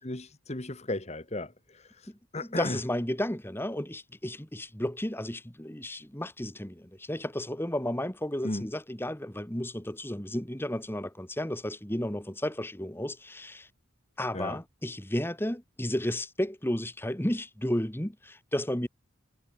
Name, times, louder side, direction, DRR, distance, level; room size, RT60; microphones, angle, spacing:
voice 1, 0.0-1.8 2.3-2.8 8.4-8.7 14.3-14.6, left 2 dB, 30° left, 1.5 m, -34 dB
voice 2, 2.1-13.7 14.2-18.9, left 1 dB, 10° left, 1.7 m, -33 dB
head